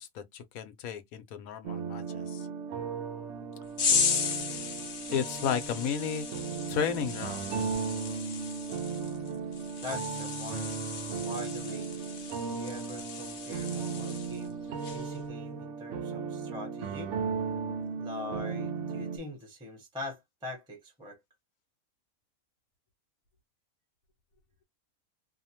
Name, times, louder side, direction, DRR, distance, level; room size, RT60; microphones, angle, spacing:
voice 1, 0.0-2.5 5.1-6.2 6.7-7.5, left 7 dB, 75° left, 1.0 m, -33 dB
sound 1, 1.6-19.2, right 5 dB, 65° right, 0.8 m, -36 dB
sound 2, 3.8-14.5 14.8-15.2, left 6 dB, 50° left, 0.7 m, -35 dB
voice 2, 9.8-10.7 11.2-12.0 12.5-17.1 18.0-21.2, left 2 dB, 5° right, 0.8 m, -43 dB
2.7 x 2.1 x 2.8 m
omnidirectional pair, 1.5 m